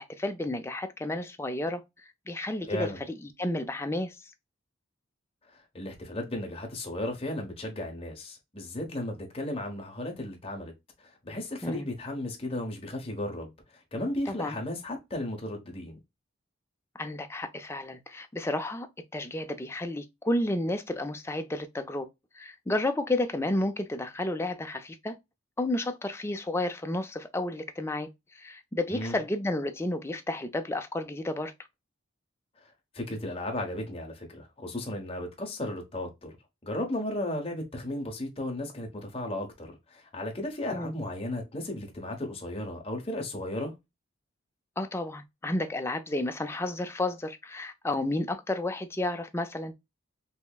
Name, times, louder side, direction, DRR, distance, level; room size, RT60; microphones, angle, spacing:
voice 1, 0.0-1.8 2.3-2.9 3.4-4.1 11.6-11.9 14.3-14.6 17.0-18.9 19.1-22.1 22.3-25.2 25.6-31.5 40.7-40.9 44.8-49.7, left 1 dB, 10° left, 0.4 m, -31 dB
voice 2, 2.6-3.0 5.5-10.7 11.0-16.0 28.9-29.2 32.6-36.4 36.6-43.7, left 1 dB, 30° left, 1.0 m, -35 dB
5.4 x 2.0 x 2.3 m
head